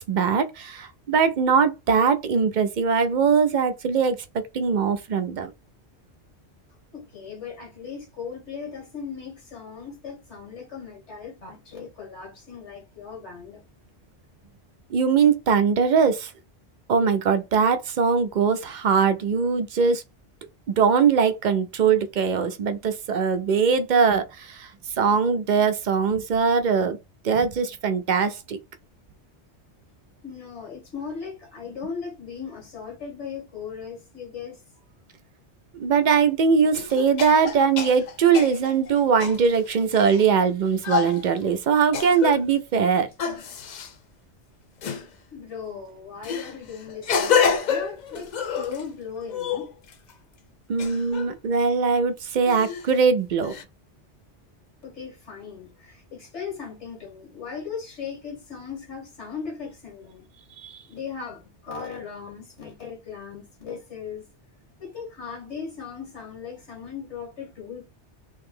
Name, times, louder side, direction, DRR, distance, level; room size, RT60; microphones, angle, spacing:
voice 1, 0.0-4.2 4.5-5.5 14.9-16.3 16.9-20.0 20.8-24.7 25.0-27.0 27.2-28.6 35.8-43.1 50.7-53.5 60.6-60.8, right 6 dB, 55° right, 0.5 m, -21 dB
voice 2, 6.9-13.6 30.2-34.6 45.3-48.3 48.6-49.7 54.8-60.3 60.9-64.3 64.8-67.8, left 6 dB, 80° left, 1.8 m, -38 dB
sound 1, 36.0-36.1 36.7-40.2 40.8-41.2 41.9-42.5 43.2-43.9 44.8-45.1 46.2-48.8 49.2-50.1 50.8-51.3 52.4-52.9 53.4-53.6, left 7 dB, 55° left, 0.5 m, -28 dB
3.2 x 2.8 x 3.6 m
omnidirectional pair, 1.2 m